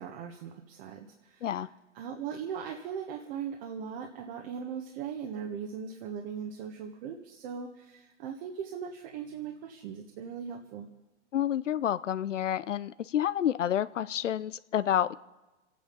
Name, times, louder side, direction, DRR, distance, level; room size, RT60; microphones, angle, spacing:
voice 1, 0.0-1.6 1.9-10.9, right 7 dB, 50° right, 2 dB, 1.6 m, -39 dB
voice 2, 11.3-15.1, left 10 dB, 85° left, 16 dB, 0.6 m, -29 dB
27.5 x 9.3 x 5.3 m, 1.1 s
hypercardioid pair, 110°, 36 cm